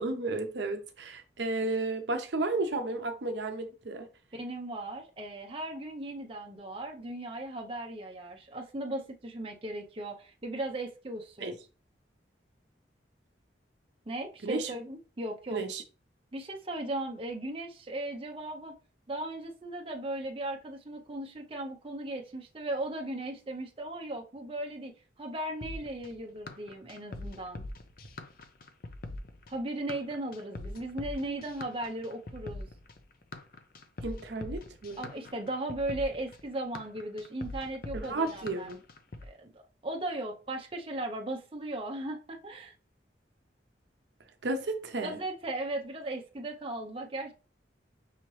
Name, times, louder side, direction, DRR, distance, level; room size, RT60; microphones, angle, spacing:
voice 1, 0.0-4.1 11.4-11.5 14.4-14.7 15.5-15.8 34.0-35.0 37.9-38.8 44.4-45.2, right 2 dB, 70° right, 0.6 m, -33 dB
voice 2, 4.3-11.6 14.1-15.6 16.3-18.8 19.1-24.9 25.2-27.6 29.5-32.7 35.0-38.7 39.2-42.7 45.0-47.3, right 1 dB, 30° right, 0.6 m, -37 dB
sound 1, 25.6-39.3, left 2 dB, 50° left, 0.5 m, -43 dB
5.5 x 2.9 x 3.0 m
head